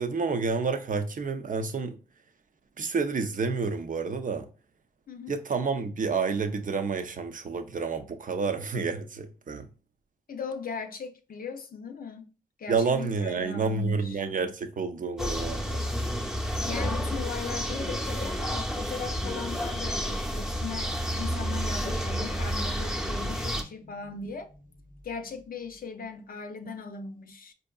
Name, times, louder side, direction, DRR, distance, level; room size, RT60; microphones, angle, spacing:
voice 1, 0.0-2.0 2.8-4.5 5.3-9.7 12.7-15.9, right 4 dB, 55° right, 0.6 m, -29 dB
voice 2, 10.3-12.3 12.6-14.2 16.6-24.5 25.0-27.5, left 5 dB, 65° left, 0.5 m, -38 dB
sound 1, 15.2-23.6, equal, 5° right, 0.7 m, -30 dB
sound 2, 19.6-26.1, left 1 dB, 90° right, 1.5 m, -56 dB
4.5 x 2.7 x 2.3 m
cardioid pair, 45°, 16 cm